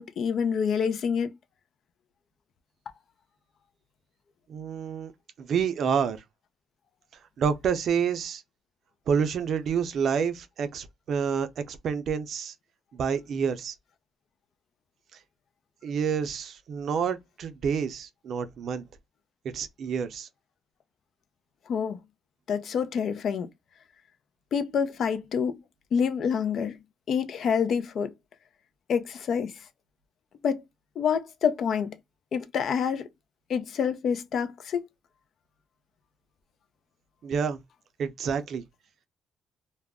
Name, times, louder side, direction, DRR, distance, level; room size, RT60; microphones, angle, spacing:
voice 1, 0.0-1.3 21.7-22.0 22.5-23.5 24.5-25.6 25.9-26.8 27.1-28.1 28.9-29.7 30.4-30.6 31.0-32.0 32.3-33.1 33.5-34.9, left 7 dB, 65° left, 0.4 m, -27 dB
voice 2, 4.5-5.1 5.4-6.2 7.4-8.4 9.1-12.5 12.9-13.7 15.8-18.8 19.5-20.3 37.2-37.6 38.0-38.6, right 7 dB, 65° right, 0.4 m, -28 dB
2.3 x 2.0 x 3.4 m
cardioid pair, 90°, 0 cm